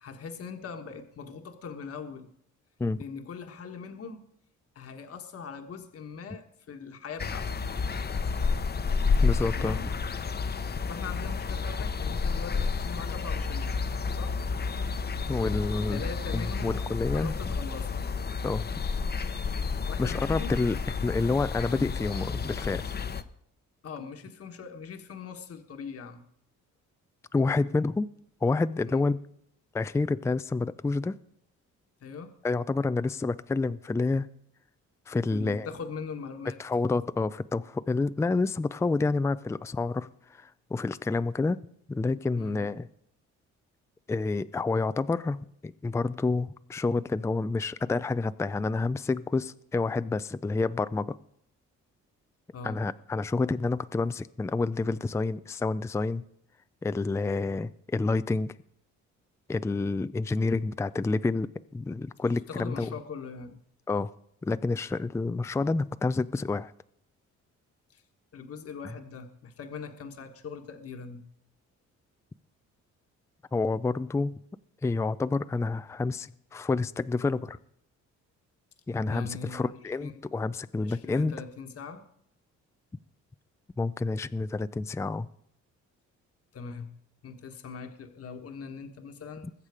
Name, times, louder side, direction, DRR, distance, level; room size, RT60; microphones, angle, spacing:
voice 1, 0.0-2.3 3.0-4.2 4.7-7.5 9.6-9.8 10.5-13.7 14.1-14.4 15.9-16.9 17.1-18.1 19.9-20.6 23.8-26.2 28.9-29.1 32.0-32.3 35.3-36.6 42.4-42.6 52.5-52.8 62.5-63.6 67.9-68.0 68.3-71.2 79.0-79.7 80.0-80.2 80.8-82.0 86.5-86.9 87.2-89.5, left 5 dB, 50° left, 5 dB, 1.4 m, -41 dB
sound 1, 7.2-23.2, left 5 dB, 35° left, 0.9 m, -30 dB
voice 2, 9.2-9.8 15.3-16.0 16.3-17.3 18.4-18.7 20.0-22.9 27.3-28.1 28.4-29.2 29.7-31.2 32.4-34.3 35.1-35.7 36.6-41.6 41.9-42.9 44.1-51.2 52.6-56.2 56.8-58.5 59.5-62.9 63.9-64.1 64.4-66.7 73.5-74.3 74.8-77.6 78.9-81.3 83.8-85.3, left 3 dB, 10° left, 14 dB, 0.4 m, -28 dB
21.0 x 7.4 x 4.9 m, 0.69 s
cardioid pair, 90°, 30 cm